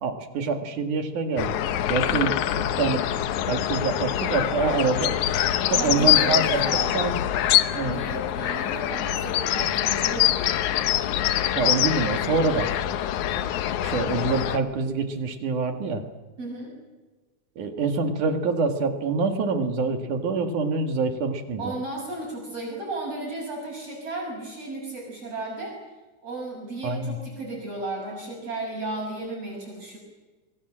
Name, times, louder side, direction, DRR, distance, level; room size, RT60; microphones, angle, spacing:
voice 1, 0.0-1.6 1.9-3.0 3.5-5.2 5.7-6.6 6.9-7.2 7.7-8.0 11.6-12.7 13.3-13.5 13.8-16.0 17.6-21.7 26.8-27.2, right 4 dB, 70° right, 7 dB, 3.5 m, -26 dB
sound 1, 1.4-14.6, left 12 dB, 70° left, 2.3 m, -24 dB
voice 2, 5.7-7.0 7.9-10.7 16.4-16.7 21.6-25.8 26.2-30.0, right 2 dB, 45° right, -1 dB, 7.7 m, -34 dB
27.0 x 22.5 x 7.6 m, 1.2 s
omnidirectional pair, 3.8 m